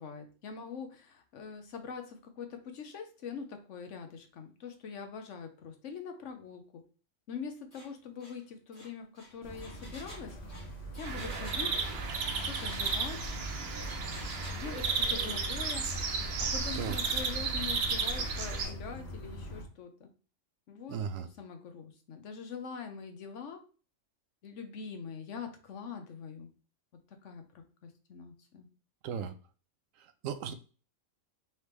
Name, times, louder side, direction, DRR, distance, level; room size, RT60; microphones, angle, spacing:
voice 1, 0.0-6.8 7.3-10.4 11.0-11.7 12.4-13.3 14.5-15.9 16.4-20.1 20.7-21.0 21.4-23.6 24.4-26.5 27.2-28.7, left 6 dB, 70° left, 6 dB, 1.1 m, -43 dB
Engine, 7.7-7.9 8.2-8.4 8.7-13.4 13.8-14.6, left 1 dB, 15° left, 1.3 m, -50 dB
sound 1, 9.4-19.6, left 1 dB, 35° left, 1.2 m, -43 dB
sound 2, 11.0-18.7, right 4 dB, 60° right, 0.8 m, -33 dB
voice 2, 20.9-21.3 29.0-29.4 30.0-30.5, right 7 dB, 85° right, 10 dB, 1.0 m, -36 dB
4.4 x 3.3 x 3.1 m, 0.37 s
omnidirectional pair, 1.3 m